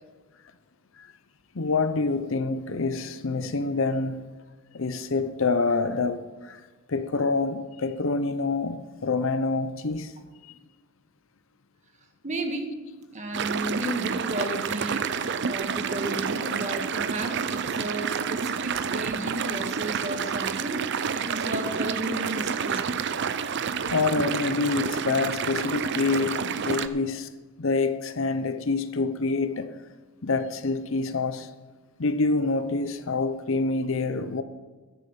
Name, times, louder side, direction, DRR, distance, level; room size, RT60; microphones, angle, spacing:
voice 1, 1.5-4.3 4.7-6.6 6.9-10.1 10.4-10.5 23.9-27.3 27.6-29.7 30.2-31.5 32.0-34.4, left 3 dB, 60° left, 0.7 m, -26 dB
voice 2, 12.2-12.7 13.1-20.8 21.1-22.8, right 1 dB, 35° right, 1.6 m, -33 dB
sound 1, 13.3-26.9, right 6 dB, 55° right, 0.5 m, -29 dB
11.5 x 10.5 x 5.8 m
head